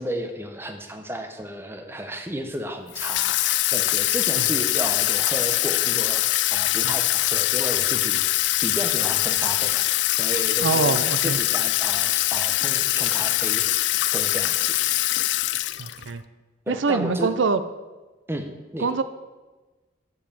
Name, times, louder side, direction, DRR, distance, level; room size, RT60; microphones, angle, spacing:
voice 1, 0.0-8.2 8.6-14.8 16.7-17.3 18.3-18.9, equal, 10° right, 6 dB, 0.8 m, -33 dB
Water tap faucet / Sink (filling or washing), 2.9-16.1, left 16 dB, 70° left, 0.3 m, -23 dB
voice 2, 10.6-11.4 15.8-16.2 16.7-17.6 18.8-19.0, right 4 dB, 90° right, 12 dB, 0.6 m, -24 dB
7.7 x 7.3 x 6.9 m, 1.2 s
head